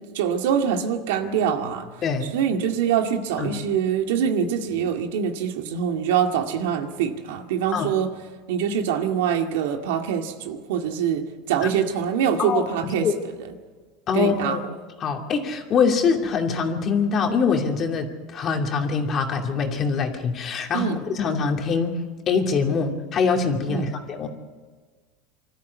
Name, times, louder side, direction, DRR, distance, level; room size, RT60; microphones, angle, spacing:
voice 1, 0.1-1.9 2.3-8.1 8.5-13.1 14.1-14.6 20.7-21.0 23.7-23.9, right 8 dB, 85° right, 5 dB, 2.1 m, -24 dB
voice 2, 12.4-13.1 14.1-14.6 15.0-21.9 22.3-24.3, left 5 dB, 30° left, 3 dB, 2.5 m, -24 dB
25.5 x 13.5 x 8.3 m, 1.4 s
supercardioid pair, 150°, 0 cm